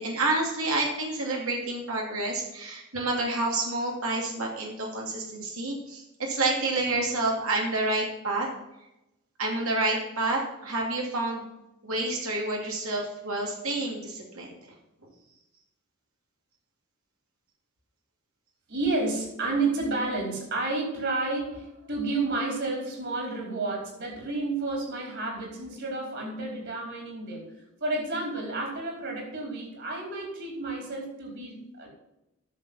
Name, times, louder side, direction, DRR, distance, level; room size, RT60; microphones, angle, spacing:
voice 1, 0.0-8.5 9.4-11.5 11.8-14.7, right 2 dB, 70° right, -1 dB, 2.6 m, -29 dB
voice 2, 18.7-27.5 27.8-31.9, right 2 dB, 55° right, -1 dB, 4.6 m, -31 dB
10.5 x 6.9 x 5.7 m, 0.90 s
head